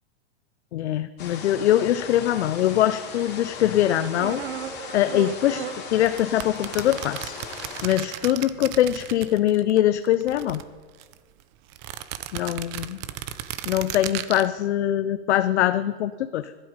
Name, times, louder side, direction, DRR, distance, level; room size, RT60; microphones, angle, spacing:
voice 1, 0.7-4.4 4.9-7.4 7.8-10.6 12.3-13.0 13.7-16.5, left 12 dB, 90° left, 11 dB, 0.6 m, -23 dB
sound 1, 1.2-7.9, left 6 dB, 30° left, 2.6 m, -39 dB
sound 2, 3.1-8.3, right 9 dB, 80° right, 1.1 m, -39 dB
sound 3, 6.0-9.8 10.1-11.2 11.7-14.5, right 13 dB, 45° right, 0.8 m, -35 dB
12.0 x 11.5 x 5.1 m, 1.4 s
hypercardioid pair, 135°, 33 cm